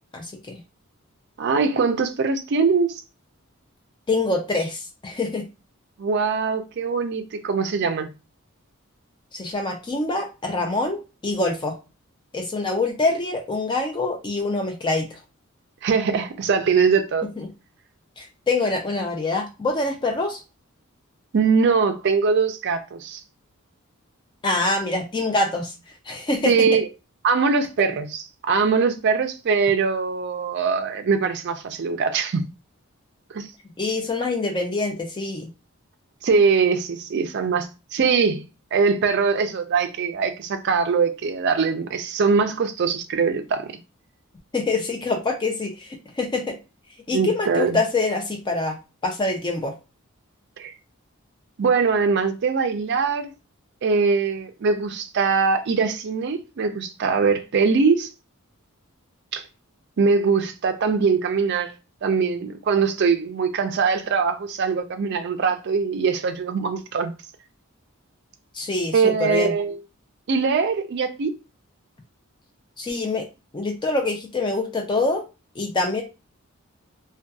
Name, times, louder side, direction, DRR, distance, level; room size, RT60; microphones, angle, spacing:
voice 1, 0.1-0.6 4.1-5.5 9.3-11.8 12.3-15.2 17.4-17.5 18.2-20.4 24.4-25.7 26.1-26.7 33.8-35.5 44.5-46.6 47.1-48.8 49.0-49.7 68.5-69.5 72.8-73.3 73.5-75.2 75.6-76.0, left 3 dB, 20° left, 0.4 m, -25 dB
voice 2, 1.4-3.0 6.0-8.1 15.8-17.3 21.3-23.2 26.4-26.9 27.2-32.5 33.3-33.5 36.2-38.4 38.7-43.7 47.1-47.8 50.6-50.7 51.6-53.3 53.8-58.1 59.3-59.4 60.0-61.7 62.0-67.1 68.9-69.8 70.3-71.3, right 5 dB, 50° right, 0.4 m, -22 dB
2.7 x 2.2 x 2.3 m
head